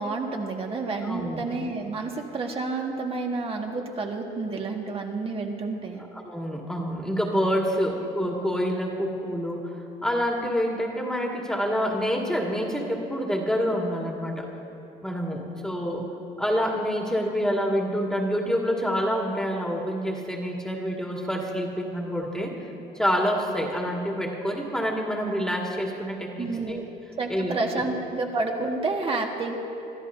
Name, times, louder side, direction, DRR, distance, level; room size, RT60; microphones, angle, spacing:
voice 1, 0.0-6.0 26.4-26.9 27.2-29.6, right 3 dB, 35° right, 1 dB, 1.8 m, -29 dB
voice 2, 1.0-1.4 6.0-14.5 15.0-16.0 16.4-22.5 22.9-26.8 27.3-27.6, equal, 5° left, -1 dB, 2.0 m, -27 dB
26.5 x 13.5 x 2.7 m, 2.9 s
cardioid pair, 110°, 17 cm